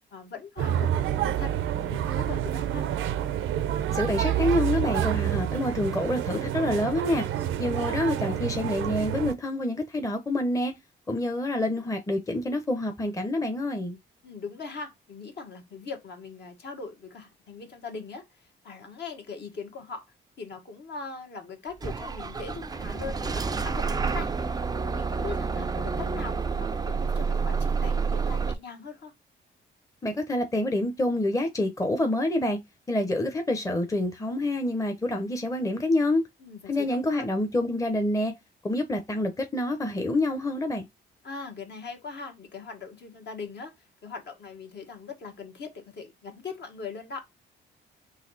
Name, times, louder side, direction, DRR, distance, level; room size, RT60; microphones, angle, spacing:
voice 1, 0.1-1.5 1.8-2.9 14.2-20.0 20.4-24.3 24.9-29.1 36.4-37.3 41.2-47.3, left 4 dB, 60° left, 1.4 m, -40 dB
sound 1, 0.6-9.3, right 11 dB, 80° right, 0.6 m, -28 dB
voice 2, 3.9-7.3 7.6-10.7 11.1-14.0 30.0-32.6 32.9-36.2 36.7-38.3 38.6-40.8, left 1 dB, 15° left, 0.8 m, -27 dB
Bus / Engine starting, 21.8-28.5, right 5 dB, 20° right, 0.4 m, -29 dB
4.0 x 2.8 x 4.0 m
cardioid pair, 90°, 20 cm